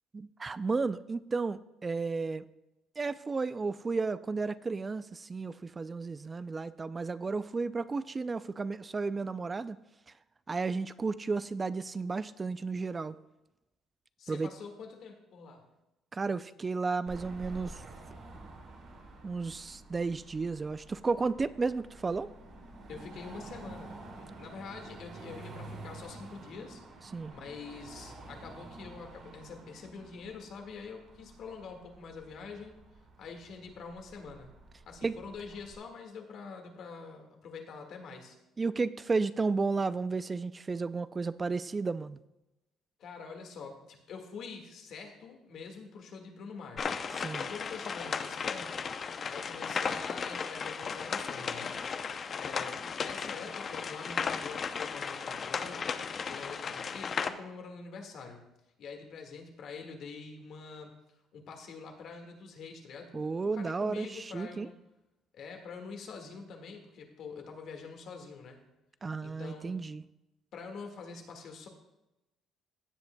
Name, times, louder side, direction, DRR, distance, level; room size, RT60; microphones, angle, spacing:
voice 1, 0.1-2.4 3.0-9.8 10.5-13.2 14.3-14.5 16.1-17.9 19.2-22.3 27.1-27.3 35.0-35.2 38.6-42.2 47.1-47.5 63.1-64.7 69.0-70.1, right 4 dB, 25° right, 14 dB, 0.3 m, -33 dB
voice 2, 14.2-15.6 22.9-26.8 27.3-32.8 33.2-34.5 34.8-38.4 43.0-47.0 47.3-48.9 49.3-51.9 52.4-55.9 56.3-58.5 58.8-60.9 61.3-63.2 63.5-64.7 65.3-68.6 69.2-69.7 70.5-71.7, left 5 dB, 65° left, 3 dB, 1.7 m, -45 dB
Car passing by / Traffic noise roadway noise / Engine, 17.1-35.8, right 2 dB, 60° right, 2.5 m, -49 dB
sound 1, 46.8-57.3, left 6 dB, 40° left, 0.6 m, -35 dB
16.0 x 8.0 x 2.2 m, 0.96 s
cardioid pair, 100°, 0 cm